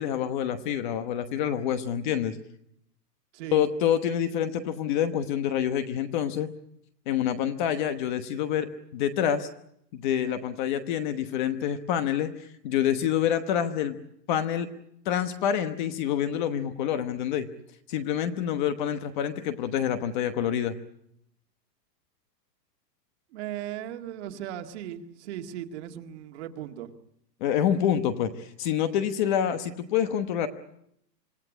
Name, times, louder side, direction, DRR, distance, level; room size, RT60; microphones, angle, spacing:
voice 1, 0.0-2.4 3.5-6.5 7.1-9.5 9.9-14.0 14.3-14.7 15.0-17.5 17.9-20.7 27.4-30.5, left 9 dB, 30° left, 9 dB, 1.1 m, -27 dB
voice 2, 3.3-3.7 23.3-26.9, right 11 dB, 40° right, 5 dB, 2.0 m, -37 dB
26.0 x 16.5 x 10.0 m, 0.75 s
supercardioid pair, 170°, 50 cm